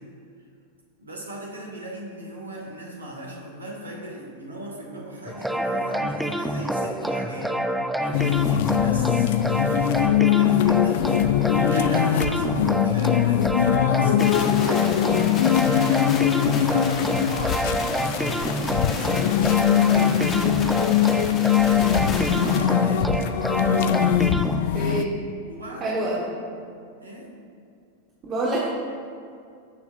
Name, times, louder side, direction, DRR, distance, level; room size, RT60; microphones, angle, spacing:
voice 1, 1.0-7.6 8.0-11.0 11.7-17.6 18.2-20.3 21.4-23.2 25.5-26.4 27.0-27.3, right 1 dB, 75° right, -1 dB, 2.1 m, -38 dB
sound 1, 5.3-24.6, right 1 dB, ahead, 0.6 m, -27 dB
sound 2, 8.1-25.0, left 11 dB, 50° left, 0.4 m, -22 dB
sound 3, 14.2-22.6, left 3 dB, 30° left, 1.4 m, -34 dB
voice 2, 21.7-22.2 24.7-25.3 25.8-26.2 28.3-28.7, right 2 dB, 30° right, -5 dB, 1.7 m, -27 dB
18.5 x 7.0 x 2.6 m, 2.4 s
figure-of-eight pair, 90°, 0 cm